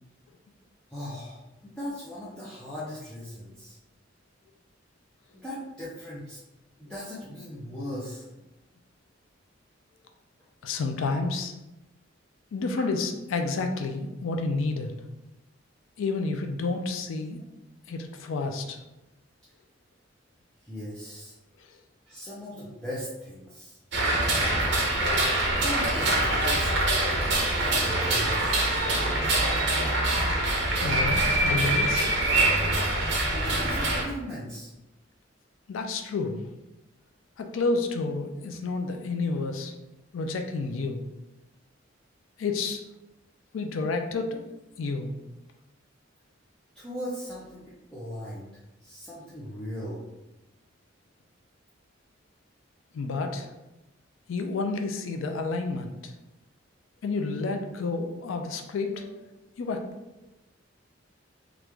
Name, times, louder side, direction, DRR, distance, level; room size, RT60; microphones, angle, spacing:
voice 1, 0.9-3.8 5.3-6.4 6.8-8.3 20.6-21.3 22.1-23.8 24.3-24.7 25.6-26.7 27.5-28.6 33.3-34.7 46.7-48.5 48.8-50.1 59.0-59.2, equal, 5° left, -10 dB, 0.6 m, -38 dB
voice 2, 10.6-11.5 12.5-14.9 16.0-17.4 17.9-18.8 30.8-32.1 35.7-36.4 37.4-39.7 40.1-41.0 42.4-42.8 43.5-45.1 52.9-53.5 54.3-56.1 57.0-59.1 59.6-59.9, left 3 dB, 90° left, 5 dB, 0.4 m, -30 dB
sound 1, 23.9-34.0, right 2 dB, 60° right, 0.8 m, -24 dB
3.0 x 2.4 x 3.4 m, 0.98 s
head